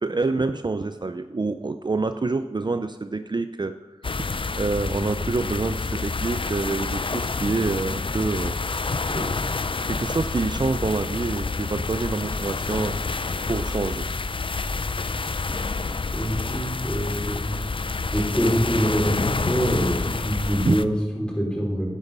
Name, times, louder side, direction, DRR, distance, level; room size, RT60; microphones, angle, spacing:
voice 1, 0.0-3.7 4.5-9.4 9.8-14.1 20.6-20.7, right 3 dB, 45° right, 10 dB, 0.5 m, -27 dB
sound 1, 4.0-20.8, left 3 dB, 55° left, 0.5 m, -28 dB
voice 2, 16.1-17.6 18.1-21.9, equal, 10° left, -3 dB, 4.9 m, -25 dB
10.5 x 10.0 x 5.5 m, 1.1 s
wide cardioid pair, 45°, 11 cm